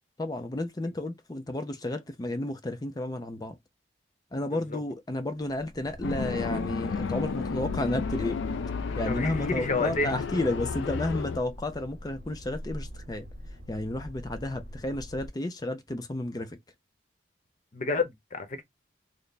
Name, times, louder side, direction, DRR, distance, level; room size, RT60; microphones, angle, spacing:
voice 1, 0.2-3.6 4.3-8.4 9.0-13.3 13.7-16.6, left 1 dB, 20° left, 0.4 m, -32 dB
sound 1, 5.5-15.3, equal, 45° right, 1.0 m, -44 dB
sound 2, 6.0-11.4, left 5 dB, 80° left, 0.4 m, -32 dB
voice 2, 9.1-10.1 17.7-18.6, left 3 dB, 40° left, 0.8 m, -29 dB
3.3 x 2.0 x 4.0 m
head